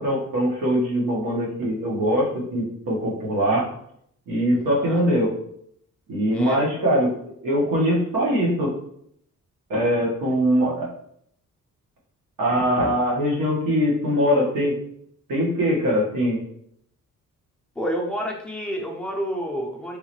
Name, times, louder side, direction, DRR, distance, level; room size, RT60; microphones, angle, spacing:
voice 1, 0.0-3.7 4.3-5.3 6.1-7.1 7.4-8.7 9.7-10.9 12.4-14.8 15.3-16.4, equal, 85° right, -4 dB, 1.4 m, -22 dB
voice 2, 4.5-5.0 6.3-6.6 17.8-20.0, equal, 5° left, -2 dB, 0.5 m, -29 dB
3.7 x 3.1 x 3.0 m, 0.69 s
wide cardioid pair, 175°, 32 cm